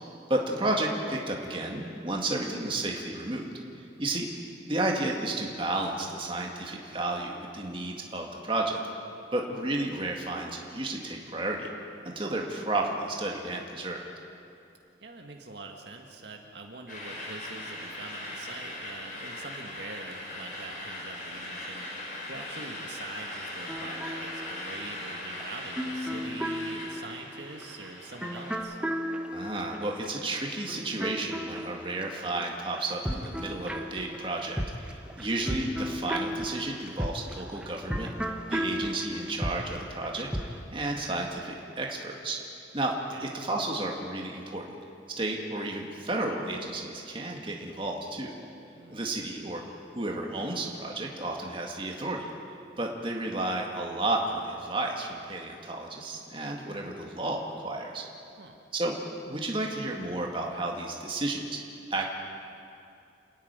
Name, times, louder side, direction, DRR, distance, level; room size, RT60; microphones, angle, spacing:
voice 1, 0.3-3.5 4.0-4.3 4.7-8.8 9.3-11.7 12.0-14.0 29.3-38.1 38.5-40.3 40.7-42.4 42.7-42.9 43.2-44.7 45.2-48.3 48.9-49.6 49.9-52.3 52.8-58.0 58.7-59.0 59.3-61.4 61.9-62.1, right 2 dB, 25° right, 0 dB, 2.0 m, -32 dB
voice 2, 4.0-4.3 15.0-28.8 43.0-43.3 48.8-49.1 58.4-58.6, right 3 dB, 65° right, 2 dB, 1.7 m, -44 dB
sound 1, 16.9-28.6, left 1 dB, 45° left, 4.0 m, -40 dB
sound 2, 23.7-32.5 32.8-40.6, equal, 5° right, 1.0 m, -35 dB
28.5 x 10.5 x 9.6 m, 2.6 s
head